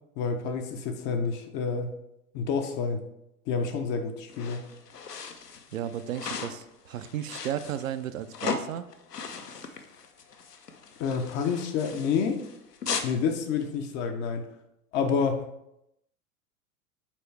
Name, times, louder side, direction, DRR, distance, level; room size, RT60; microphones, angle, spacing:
voice 1, 0.2-1.9 2.3-3.0 3.5-4.7 9.6-9.7 11.0-12.4 13.0-14.5 14.9-15.4, left 5 dB, 25° left, 6 dB, 0.5 m, -28 dB
sound 1, 4.3-13.2, left 5 dB, 85° left, 0.7 m, -38 dB
voice 2, 5.7-8.9, right 10 dB, 60° right, 11 dB, 0.5 m, -34 dB
7.2 x 4.4 x 3.2 m, 0.81 s
figure-of-eight pair, 90°, 46 cm